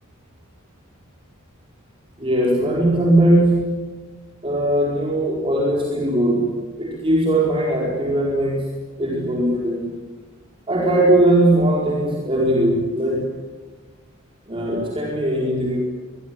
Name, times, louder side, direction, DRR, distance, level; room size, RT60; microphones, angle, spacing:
voice 1, 2.2-3.7 4.4-8.7 9.0-9.9 10.7-13.4 14.5-15.8, right 1 dB, 25° right, -2 dB, 4.8 m, -19 dB
24.5 x 22.0 x 10.0 m, 1.3 s
head